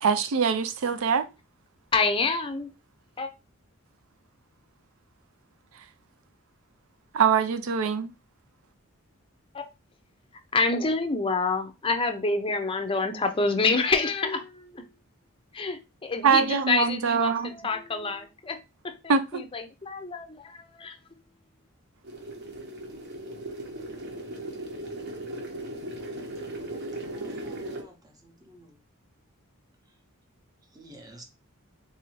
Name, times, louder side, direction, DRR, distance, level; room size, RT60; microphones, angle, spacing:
voice 1, 0.0-1.3 7.1-8.1 16.2-17.5 19.1-19.5, right 6 dB, 70° right, 0.5 m, -23 dB
voice 2, 1.9-2.7 3.2-3.3 9.5-9.6 10.5-14.9 15.5-18.6 19.3-21.0, left 3 dB, 25° left, 0.5 m, -27 dB
sound 1, 22.0-27.8, right 1 dB, 50° right, 0.9 m, -37 dB
voice 3, 27.0-28.8 30.7-31.2, right 1 dB, 15° right, 0.7 m, -51 dB
4.0 x 2.6 x 3.0 m
head